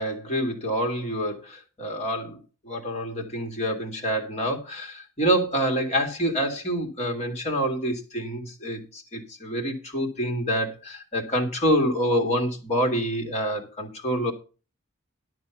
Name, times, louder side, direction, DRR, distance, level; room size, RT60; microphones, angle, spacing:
voice 1, 0.0-2.4 2.7-14.3, equal, 30° left, 4 dB, 2.0 m, -27 dB
11.5 x 6.0 x 5.8 m, 0.34 s
head